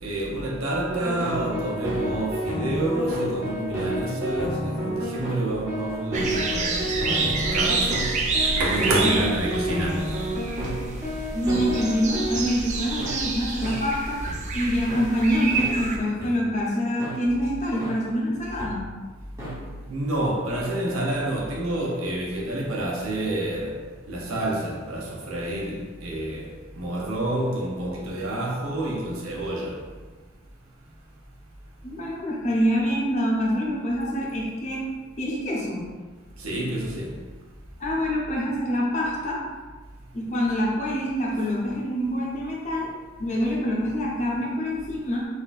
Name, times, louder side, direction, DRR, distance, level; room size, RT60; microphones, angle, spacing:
voice 1, 0.0-8.0 8.6-10.0 19.9-23.7 24.1-26.4 26.8-29.7 36.4-37.1, right 1 dB, 80° right, -2 dB, 0.7 m, -28 dB
sound 1, 0.9-12.4 13.0-13.1 13.6-13.8 14.3-14.4 14.9-15.0 15.5-15.7 16.2-16.3 17.0-17.1 17.8-17.9 18.6-18.7 19.4-19.5, equal, 15° right, 0.9 m, -30 dB
sound 2, 6.1-16.0, right 3 dB, 35° right, 0.3 m, -28 dB
voice 2, 11.3-14.2 14.5-18.8 31.8-34.8 35.2-35.9 37.8-39.4 40.1-42.9 43.2-45.3, equal, 35° left, -4 dB, 0.7 m, -26 dB
4.1 x 2.7 x 2.4 m, 1.4 s
head